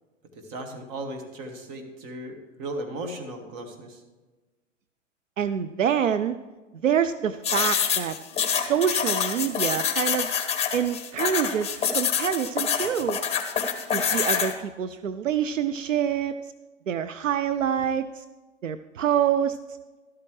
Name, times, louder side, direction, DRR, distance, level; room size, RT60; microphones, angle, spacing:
voice 1, 0.4-4.0, right 1 dB, 40° right, 4 dB, 2.1 m, -36 dB
voice 2, 5.4-6.4 6.8-8.2 8.5-10.3 10.7-13.2 13.9-16.4 16.9-18.2 18.6-19.6, right 8 dB, 80° right, 11 dB, 0.6 m, -26 dB
sound 1, 7.4-14.5, left 7 dB, 15° left, 1.3 m, -26 dB
13.0 x 12.5 x 3.2 m, 1.2 s
figure-of-eight pair, 105°, 38 cm